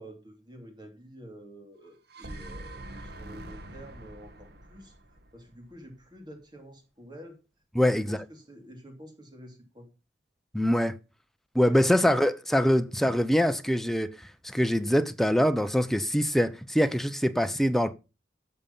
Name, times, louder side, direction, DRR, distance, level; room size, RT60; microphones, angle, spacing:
voice 1, 0.0-4.9 5.3-7.4 7.8-9.9 11.7-11.9, equal, 25° right, 2.7 m, -48 dB
sound 1, 1.9-6.0, right 1 dB, 60° right, 1.3 m, -44 dB
voice 2, 7.7-8.2 10.5-10.9 11.5-14.1 14.4-17.9, equal, ahead, 0.7 m, -24 dB
12.5 x 7.0 x 5.4 m
head